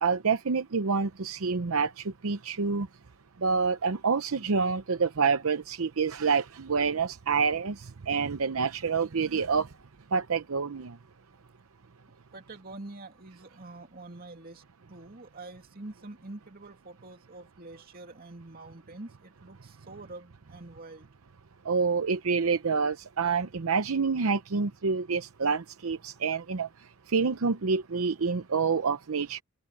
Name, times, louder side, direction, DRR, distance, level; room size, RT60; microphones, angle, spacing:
voice 1, 0.0-2.9 3.4-9.7 10.1-11.0 21.7-26.7 27.1-29.4, right 5 dB, 75° right, 0.7 m, -27 dB
voice 2, 12.3-14.6 14.9-21.1, right 2 dB, 45° right, 2.7 m, -46 dB
open air
head